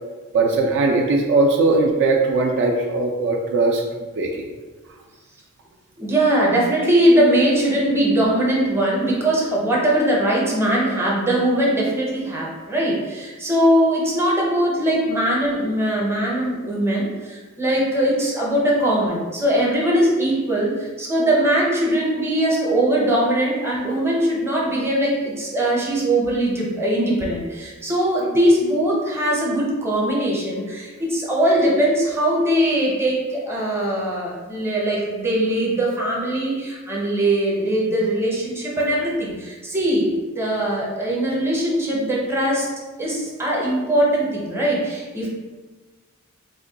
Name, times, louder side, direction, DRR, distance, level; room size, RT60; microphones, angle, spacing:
voice 1, 0.3-3.8 4.2-4.5, right 3 dB, 55° right, 0 dB, 0.3 m, -19 dB
voice 2, 6.0-42.7 43.0-45.3, right 1 dB, 10° right, -4 dB, 0.7 m, -21 dB
3.0 x 2.2 x 3.9 m, 1.3 s
head